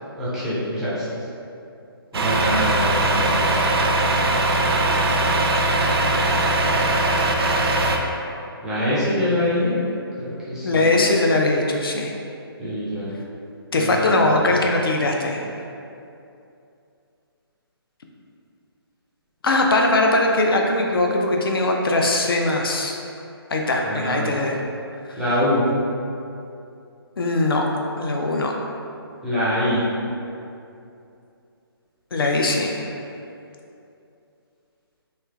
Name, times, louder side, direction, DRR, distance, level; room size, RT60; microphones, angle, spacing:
voice 1, 0.2-1.1 2.1-3.6 8.6-9.8 10.2-10.9 12.6-13.1 13.8-14.7 23.8-24.3 25.2-25.6 29.2-29.8, left 1 dB, 5° right, -11 dB, 0.4 m, -24 dB
Truck, 2.1-8.0, right 2 dB, 75° right, 0.4 m, -20 dB
voice 2, 10.6-12.1 13.7-15.4 19.4-22.9 23.5-24.6 25.1-25.2 27.2-27.7 28.0-28.5 32.1-33.0, left 2 dB, 65° left, 1 dB, 0.4 m, -20 dB
3.2 x 2.8 x 2.3 m, 2.6 s
figure-of-eight pair, 145°, 13 cm